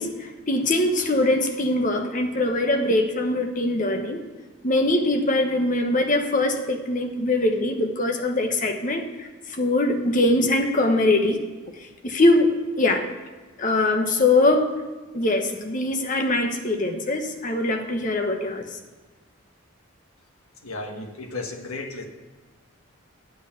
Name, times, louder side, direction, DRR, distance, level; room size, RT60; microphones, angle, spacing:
voice 1, 0.0-4.2 4.6-11.4 12.0-13.0 13.6-14.8 15.1-18.8, left 2 dB, 35° left, 4 dB, 1.0 m, -22 dB
voice 2, 20.6-22.0, left 3 dB, 90° left, 3 dB, 1.5 m, -34 dB
8.9 x 8.3 x 5.8 m, 1.3 s
head